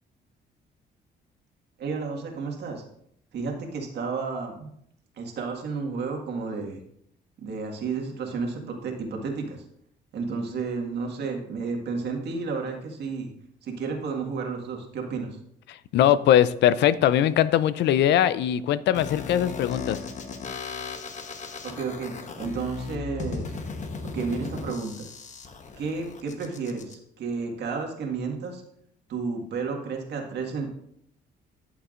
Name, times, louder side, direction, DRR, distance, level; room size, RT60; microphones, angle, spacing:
voice 1, 1.8-2.8 3.3-4.7 5.2-6.8 7.4-9.6 10.1-13.3 13.6-15.4 21.6-23.5 24.1-25.1 25.8-28.6 29.1-30.7, right 4 dB, 70° right, 2 dB, 1.8 m, -32 dB
voice 2, 15.7-20.0, left 11 dB, 80° left, 16 dB, 0.5 m, -21 dB
sound 1, 18.9-26.9, left 5 dB, 45° left, 1.1 m, -36 dB
13.5 x 7.1 x 2.5 m, 0.72 s
cardioid pair, 120°, 18 cm